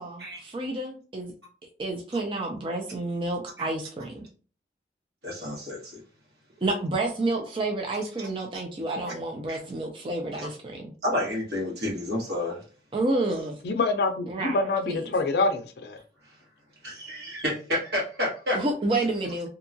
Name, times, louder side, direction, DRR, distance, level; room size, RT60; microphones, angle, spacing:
voice 1, 0.0-1.3 1.8-4.2 6.6-10.9 12.9-13.6 14.3-15.1 18.5-19.5, right 2 dB, 30° right, 1 dB, 0.4 m, -29 dB
voice 2, 5.2-6.0 9.0-9.1 9.5-9.6 10.4-10.5 11.0-12.6 16.8-18.6, left 1 dB, 75° right, -4 dB, 1.4 m, -30 dB
voice 3, 13.6-16.0, left 3 dB, 70° left, 7 dB, 0.4 m, -26 dB
2.8 x 2.3 x 2.6 m, 0.37 s
head